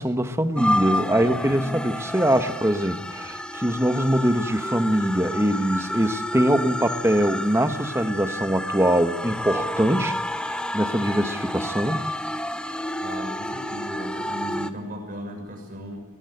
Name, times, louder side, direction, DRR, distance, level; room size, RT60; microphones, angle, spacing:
voice 1, 0.0-12.0, equal, 10° right, 8 dB, 1.3 m, -23 dB
sound 1, 0.5-14.7, left 1 dB, 5° left, 0.8 m, -30 dB
voice 2, 13.0-16.0, equal, 40° right, 2 dB, 6.2 m, -36 dB
21.5 x 19.5 x 7.9 m, 1.1 s
head